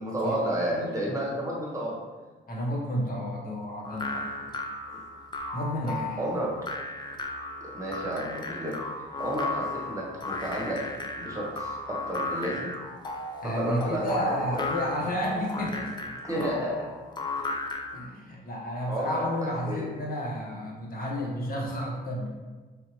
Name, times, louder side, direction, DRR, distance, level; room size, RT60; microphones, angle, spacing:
voice 1, 0.0-1.9 4.9-5.0 5.9-6.5 7.6-8.8 9.2-10.8 11.2-12.7 13.4-14.2 16.2-16.9 18.9-19.2 19.6-19.9, right 1 dB, 15° right, -3 dB, 1.2 m, -31 dB
voice 2, 2.5-4.3 5.5-6.2 13.4-15.9 17.9-22.3, equal, 50° left, -3 dB, 1.0 m, -31 dB
sound 1, 3.8-18.1, left 2 dB, 25° left, 0.4 m, -35 dB
3.3 x 2.7 x 3.0 m, 1.3 s
cardioid pair, 80°, 19 cm